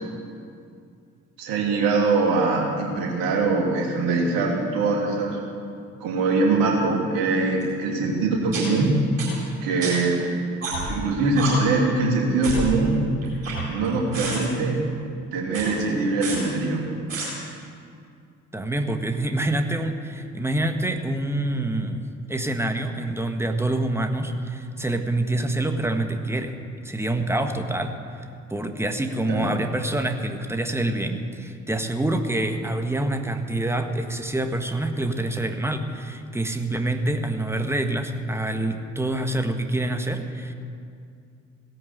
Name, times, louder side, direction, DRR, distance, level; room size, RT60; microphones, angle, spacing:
voice 1, 1.4-5.4 6.0-8.9 9.6-10.2 10.9-13.0 13.7-14.8 15.3-17.0 29.3-29.5, right 3 dB, 65° right, 0 dB, 2.8 m, -22 dB
sound 1, 7.6-7.7 8.5-8.6 9.2-9.3 9.8-9.9 10.6-10.9 11.4-11.5 12.4-12.7 13.2-13.9 14.1-14.4 15.5-15.6 16.2-16.4 17.1-17.2, right 3 dB, 80° right, 4.4 m, -29 dB
voice 2, 18.5-26.6 26.8-28.0 28.5-40.5, right 1 dB, 5° right, 6 dB, 1.6 m, -26 dB
17.0 x 11.0 x 7.8 m, 2.4 s
figure-of-eight pair, 45°, 38 cm